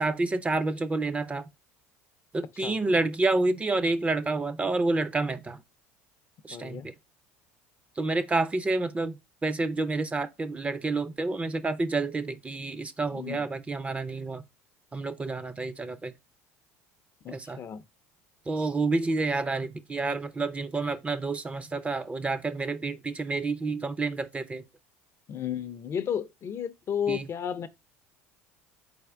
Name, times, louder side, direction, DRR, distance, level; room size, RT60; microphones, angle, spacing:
voice 1, 0.0-1.4 2.3-5.6 6.4-6.9 8.0-14.4 14.9-16.1 17.3-17.6 18.5-24.6 27.1-27.3, right 3 dB, 20° right, 0.5 m, -29 dB
voice 2, 6.5-6.9 13.1-13.5 17.2-17.8 25.3-27.7, left 8 dB, 40° left, 0.5 m, -33 dB
4.2 x 3.4 x 3.6 m
hypercardioid pair, 85°, 7 cm